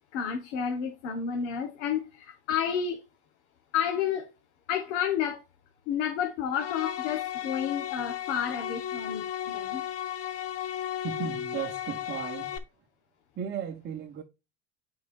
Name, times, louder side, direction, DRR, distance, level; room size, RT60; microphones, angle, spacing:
voice 1, 0.1-3.0 3.7-4.3 4.7-5.4 5.9-9.8, left 8 dB, 75° left, 1.5 m, -30 dB
sound 1, 6.5-12.6, left 11 dB, 40° left, 1.1 m, -35 dB
voice 2, 11.0-12.6 13.3-14.2, right 7 dB, 30° right, 1.1 m, -35 dB
9.3 x 4.8 x 2.5 m
supercardioid pair, 115°, 36 cm